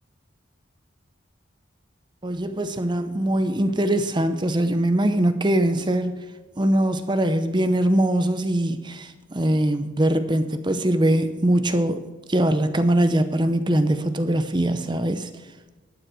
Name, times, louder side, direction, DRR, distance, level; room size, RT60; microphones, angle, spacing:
voice 1, 2.2-6.2 6.6-15.3, right 1 dB, 20° right, 10 dB, 0.7 m, -22 dB
12.0 x 9.6 x 6.2 m, 1.2 s
head